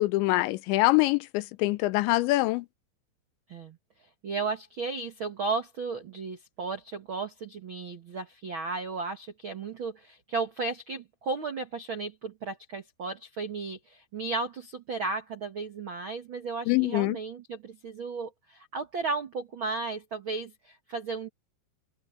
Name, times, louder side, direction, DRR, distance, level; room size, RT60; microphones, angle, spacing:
voice 1, 0.0-2.7 16.7-17.2, left 20 dB, 90° left, 3.1 m, -24 dB
voice 2, 4.2-21.3, right 4 dB, 80° right, 1.1 m, -34 dB
open air
omnidirectional pair, 5.1 m